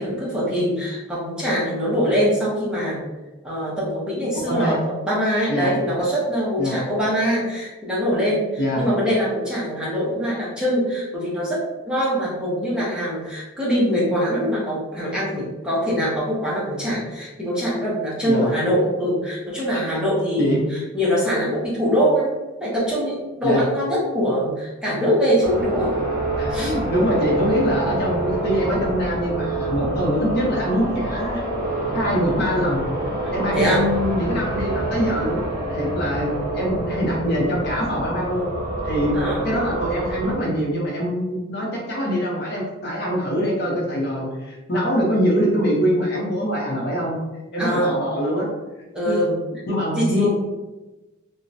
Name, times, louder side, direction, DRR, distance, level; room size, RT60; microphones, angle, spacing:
voice 1, 0.0-3.1 3.4-8.4 8.8-22.3 22.6-25.9 26.5-26.7 33.2-33.9 39.1-39.4 47.6-48.0 48.9-49.4 50.0-50.3, equal, 5° right, -7 dB, 0.6 m, -23 dB
voice 2, 4.3-4.8 5.5-5.8 6.6-6.8 8.6-8.8 18.3-18.5 19.6-19.8 20.4-20.6 23.4-23.6 26.4-31.4 31.9-32.8 33.3-38.5 38.8-39.1 39.4-47.2 47.5-48.5 49.1-49.2 49.7-50.3, equal, 50° left, -3 dB, 0.7 m, -23 dB
sound 1, 25.4-40.3, right 2 dB, 45° right, 0.7 m, -27 dB
3.0 x 2.2 x 2.6 m, 1.1 s
head